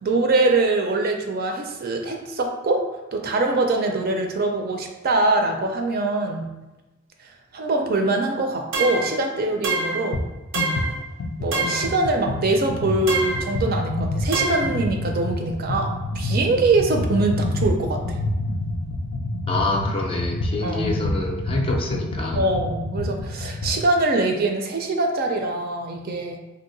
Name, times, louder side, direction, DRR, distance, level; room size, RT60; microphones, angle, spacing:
voice 1, 0.0-2.8 3.1-6.5 7.5-10.3 11.4-18.2 20.6-21.0 21.6-21.7 22.3-26.4, right 2 dB, 50° right, 3 dB, 0.4 m, -23 dB
sound 1, 8.7-9.2 9.6-10.1 10.5-11.0 11.5-12.0 13.1-13.5 14.3-14.8, right 3 dB, 85° right, 0.7 m, -26 dB
sound 2, 10.1-10.3 10.5-23.8, left 1 dB, 90° left, 0.4 m, -27 dB
voice 2, 19.5-22.5, left 2 dB, 25° left, 1 dB, 0.4 m, -27 dB
2.8 x 2.0 x 3.8 m, 1.1 s
head